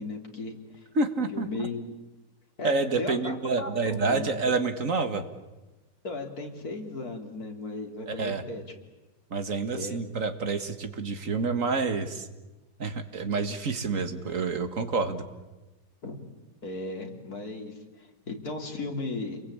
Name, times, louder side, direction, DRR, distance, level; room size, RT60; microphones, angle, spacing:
voice 1, 0.0-0.9 1.3-1.8 2.6-4.3 6.0-8.6 9.7-10.0 16.0-16.2 16.6-19.5, left 3 dB, 60° left, 2 dB, 3.8 m, -36 dB
voice 2, 1.0-1.7 2.6-5.2 8.1-8.4 9.3-12.3 12.8-15.2, right 4 dB, 50° right, 8 dB, 2.0 m, -28 dB
29.0 x 22.0 x 8.7 m, 1.1 s
omnidirectional pair, 1.8 m